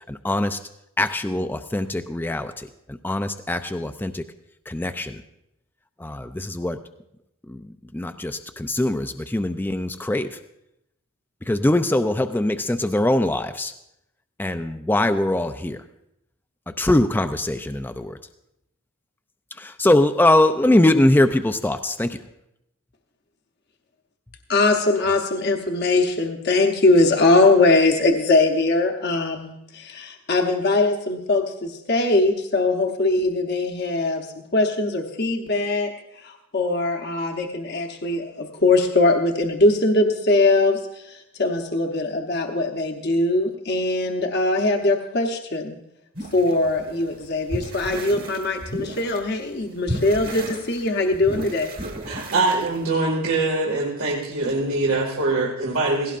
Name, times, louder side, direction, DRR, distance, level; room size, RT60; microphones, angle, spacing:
voice 1, 0.1-0.6 1.0-2.7 3.0-4.2 4.7-5.2 6.0-6.8 7.9-10.3 11.5-13.7 14.4-15.8 16.8-18.2 19.6-22.2, left 1 dB, 10° left, 8 dB, 0.3 m, -22 dB
voice 2, 24.5-34.3 34.5-45.8 46.3-51.7, left 2 dB, 45° left, 3 dB, 0.9 m, -21 dB
sound 1, 46.1-49.3 49.5-52.9, right 1 dB, 40° right, 1.4 m, -34 dB
voice 3, 52.1-56.2, right 2 dB, 80° right, -3 dB, 2.0 m, -23 dB
17.0 x 17.0 x 2.5 m, 0.84 s
head